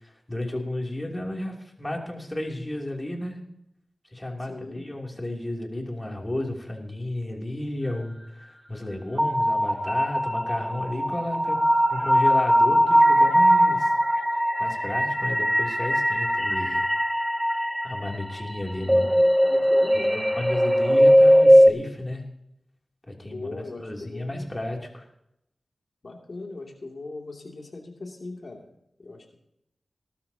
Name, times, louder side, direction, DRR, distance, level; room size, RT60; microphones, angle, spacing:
voice 1, 0.0-3.4 4.1-11.6 11.9-13.9 14.6-16.9 17.8-19.1 20.1-22.2 23.1-23.5 23.8-25.1, left 1 dB, 25° left, 0 dB, 3.1 m, -33 dB
voice 2, 4.5-4.8 18.8-20.3 23.2-24.5 26.0-28.6 29.0-29.4, left 3 dB, 65° left, 1 dB, 2.8 m, -39 dB
sound 1, 9.2-21.7, equal, 5° right, 1.4 m, -20 dB
19.0 x 12.5 x 2.9 m, 0.79 s
cardioid pair, 45°, 0 cm